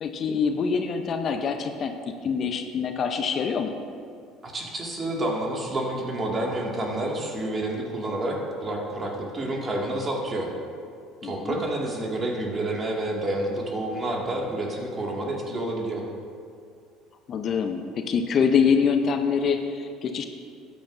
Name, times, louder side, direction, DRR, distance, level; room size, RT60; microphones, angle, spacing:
voice 1, 0.0-2.0 2.2-3.7 11.2-11.6 17.3-20.3, left 6 dB, 50° left, 6 dB, 0.7 m, -25 dB
voice 2, 4.4-10.5 11.2-16.0, right 1 dB, 30° right, -1 dB, 2.1 m, -29 dB
14.0 x 9.3 x 2.6 m, 2.3 s
hypercardioid pair, 65°, 0 cm